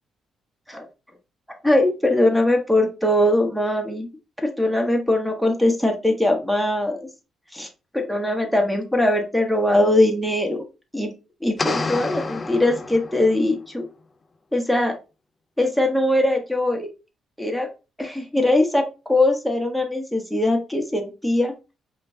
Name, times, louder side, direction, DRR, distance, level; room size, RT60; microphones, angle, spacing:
voice 1, 1.6-4.1 4.4-7.1 7.5-7.7 7.9-10.6 10.9-11.1 11.4-13.8 14.5-14.9 15.6-16.9 17.4-17.7 18.0-21.5, left 1 dB, ahead, 1 dB, 1.0 m, -21 dB
sound 1, 11.6-13.5, left 3 dB, 30° left, 0.4 m, -28 dB
5.1 x 2.4 x 2.7 m, 0.29 s
cardioid pair, 90°, 0 cm